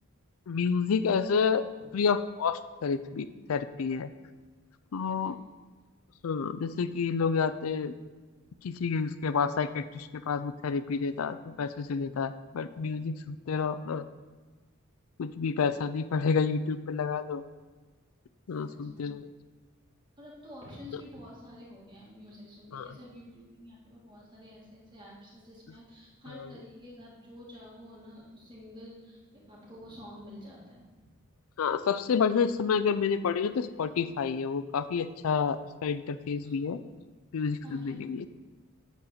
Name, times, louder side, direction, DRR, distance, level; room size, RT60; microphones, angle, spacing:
voice 1, 0.5-1.7 1.9-4.1 4.9-5.4 6.2-7.9 8.6-14.1 15.2-17.4 18.5-19.3 22.7-22.9 26.3-26.5 31.6-36.8 37.3-38.3, left 5 dB, 85° left, 12 dB, 0.4 m, -29 dB
voice 2, 18.6-19.1 20.2-31.1 36.4-36.5 37.6-38.3, left 1 dB, 20° right, -4 dB, 2.1 m, -49 dB
8.0 x 4.2 x 6.6 m, 1.3 s
head